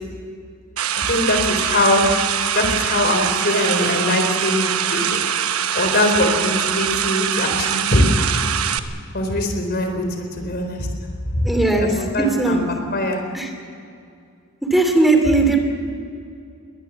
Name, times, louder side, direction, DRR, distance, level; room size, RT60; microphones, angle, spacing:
sound 1, 0.8-8.8, right 9 dB, 90° right, 1.0 m, -23 dB
voice 1, 0.9-2.1 2.5-5.2 5.7-8.4 9.1-10.9 11.3-11.5 11.8-13.2, left 1 dB, 50° left, 5 dB, 4.0 m, -21 dB
voice 2, 11.4-11.9 12.4-12.6 13.3-13.5 14.7-15.6, right 2 dB, ahead, 4 dB, 2.8 m, -17 dB
22.5 x 19.0 x 7.4 m, 2.4 s
head